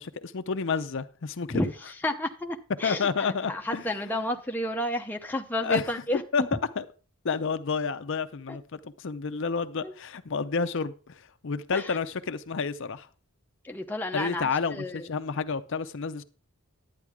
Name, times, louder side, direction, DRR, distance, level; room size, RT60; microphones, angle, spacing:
voice 1, 0.0-1.7 2.8-4.0 5.6-5.9 6.3-6.4 6.8-6.9 7.2-13.1 14.1-16.2, left 5 dB, 55° left, 0.6 m, -30 dB
voice 2, 2.0-6.2 8.5-8.6 9.8-9.9 11.7-12.0 13.6-15.1, left 1 dB, 10° left, 0.7 m, -31 dB
11.0 x 9.2 x 3.6 m
head